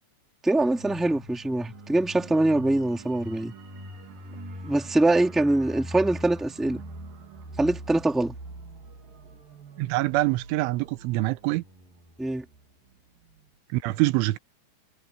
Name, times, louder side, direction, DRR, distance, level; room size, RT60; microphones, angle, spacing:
voice 1, 0.4-3.5 4.6-6.8 7.6-8.3 12.2-12.4, right 2 dB, ahead, 2.4 m, -23 dB
sound 1, 0.6-12.9 13.2-13.4, right 1 dB, 50° right, 4.4 m, -43 dB
voice 2, 9.8-11.6 13.7-14.4, right 19 dB, 85° right, 3.2 m, -25 dB
omnidirectional pair, 5.5 m